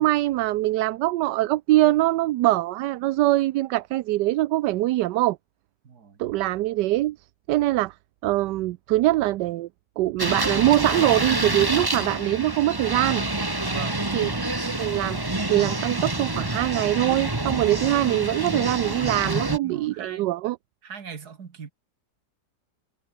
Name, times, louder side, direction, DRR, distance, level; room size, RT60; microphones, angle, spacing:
voice 1, 0.0-5.4 6.2-7.2 7.5-7.9 8.2-9.7 10.0-13.2 14.1-14.3 14.7-20.6, right 16 dB, 85° right, 1.2 m, -23 dB
voice 2, 5.8-6.2 13.7-14.0 19.6-20.4 20.8-21.7, right 6 dB, 65° right, 2.4 m, -39 dB
sound 1, 10.2-19.6, right 2 dB, 15° right, 1.6 m, -27 dB
omnidirectional pair, 1.8 m